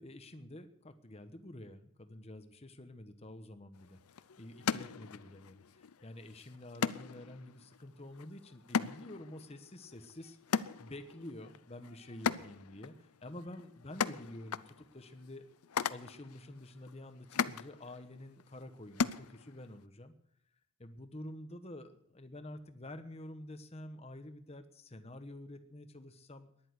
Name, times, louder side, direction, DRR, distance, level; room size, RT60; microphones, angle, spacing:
voice 1, 0.0-4.0 4.4-10.4 10.8-15.4 15.9-20.1 20.8-26.5, left 1 dB, 25° left, 8 dB, 1.1 m, -49 dB
sound 1, 3.7-19.8, left 6 dB, 85° left, 0.6 m, -40 dB
14.0 x 11.0 x 8.1 m, 0.69 s
head